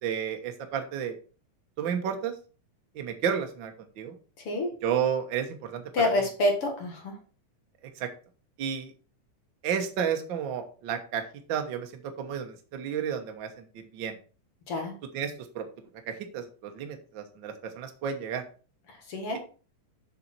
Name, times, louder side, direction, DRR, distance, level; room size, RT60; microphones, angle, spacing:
voice 1, 0.0-1.2 1.8-2.3 2.9-4.1 4.8-6.1 8.0-8.1 8.6-8.9 9.6-11.2 11.5-14.2 15.1-15.7 16.1-18.4, right 8 dB, 55° right, 5 dB, 1.3 m, -32 dB
voice 2, 5.9-7.1 14.7-14.9 18.9-19.4, left 2 dB, 50° left, 2 dB, 2.5 m, -27 dB
6.9 x 6.7 x 4.4 m, 0.38 s
omnidirectional pair, 3.6 m